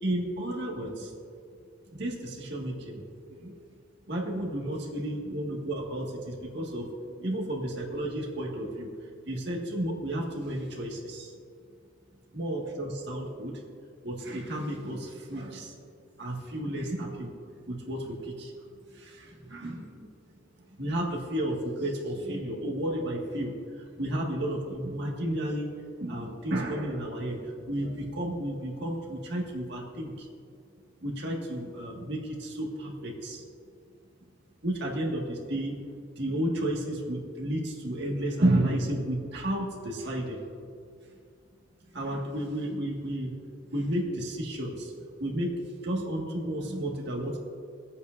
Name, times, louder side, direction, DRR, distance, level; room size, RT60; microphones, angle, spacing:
voice 1, 0.0-1.2 1.9-3.0 3.3-3.5 4.1-6.9 7.2-8.9 9.3-11.3 12.3-13.5 14.0-15.8 16.2-17.3 17.7-18.5 18.9-20.1 20.8-25.7 26.0-30.3 31.0-33.4 34.6-35.8 36.2-40.4 41.9-43.4 43.7-44.9 45.2-45.5 45.8-47.4, right 1 dB, 60° right, -2 dB, 1.9 m, -32 dB
24.5 x 8.4 x 2.6 m, 2.3 s
head